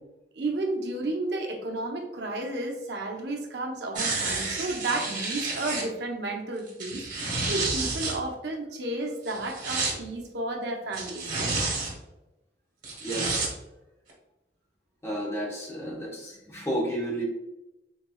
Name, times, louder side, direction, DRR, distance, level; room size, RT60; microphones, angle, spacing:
voice 1, 0.3-11.5, right 2 dB, 65° right, 1 dB, 0.7 m, -32 dB
sound 1, 3.9-5.8 6.7-8.1 9.2-9.9 10.9-11.9 12.8-13.5 14.1-14.2, right 3 dB, 50° right, 1.2 m, -30 dB
voice 2, 13.0-13.4 15.0-17.2, right 1 dB, 15° left, -3 dB, 0.9 m, -32 dB
3.8 x 3.2 x 2.2 m, 0.95 s
head